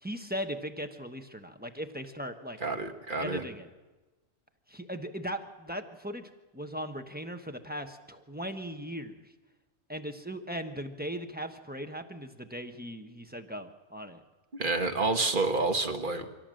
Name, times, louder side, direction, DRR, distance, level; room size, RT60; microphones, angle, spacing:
voice 1, 0.0-2.6 3.2-3.7 4.7-9.2 9.9-14.2, equal, 10° right, 6 dB, 1.0 m, -38 dB
voice 2, 2.6-3.4 14.6-16.3, right 3 dB, 40° right, 6 dB, 1.5 m, -29 dB
24.0 x 17.0 x 7.7 m, 1.2 s
omnidirectional pair, 1.4 m